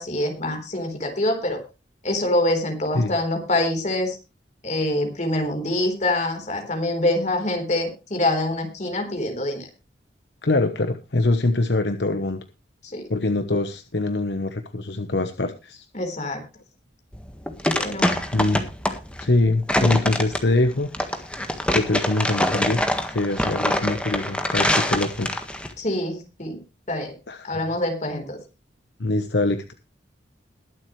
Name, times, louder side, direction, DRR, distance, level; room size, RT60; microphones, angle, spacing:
voice 1, 0.0-1.6 2.0-4.2 4.6-9.7 12.8-13.0 15.9-16.4 17.8-18.2 25.8-26.6 26.9-27.1 27.4-28.4, left 1 dB, 40° left, 5 dB, 3.9 m, -25 dB
voice 2, 10.4-12.4 13.1-15.9 18.3-18.6 19.2-20.9 21.7-22.8 23.1-25.3 27.3-27.5 29.0-29.7, left 2 dB, 65° left, 8 dB, 1.0 m, -23 dB
sound 1, 17.1-25.7, left 1 dB, 5° left, 1.6 m, -24 dB
21.5 x 7.7 x 3.2 m, 0.29 s
head